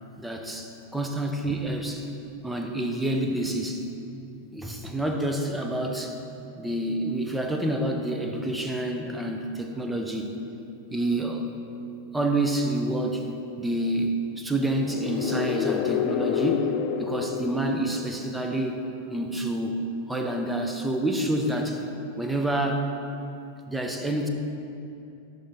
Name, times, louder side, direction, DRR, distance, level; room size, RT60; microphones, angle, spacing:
voice 1, 0.2-2.1 2.4-3.9 4.5-6.2 6.6-10.3 10.9-11.5 12.1-13.3 13.6-16.7 17.0-18.8 19.1-21.8 22.2-22.9 23.7-24.3, right 1 dB, 5° right, 3 dB, 0.6 m, -28 dB
sound 1, 14.7-18.5, left 9 dB, 40° left, 0.3 m, -29 dB
11.5 x 3.8 x 3.6 m, 2.7 s
figure-of-eight pair, 90°, 0 cm